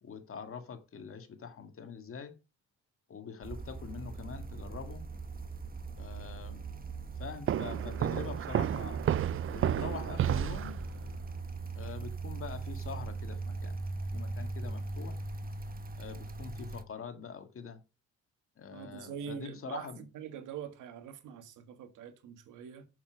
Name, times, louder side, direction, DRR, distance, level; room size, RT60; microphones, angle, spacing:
voice 1, 0.0-2.4 3.1-5.1 6.0-6.7 7.2-9.0 9.5-10.8 11.8-13.8 14.1-15.2 16.0-17.8 18.6-20.0, left 6 dB, 45° left, 1.8 m, -44 dB
sound 1, 3.4-16.8, right 3 dB, 30° right, 1.3 m, -40 dB
sound 2, 7.5-11.2, right 11 dB, 45° right, 0.4 m, -31 dB
voice 2, 18.7-22.9, right 8 dB, 85° right, 1.9 m, -44 dB
7.0 x 6.9 x 6.2 m
cardioid pair, 90°, 30 cm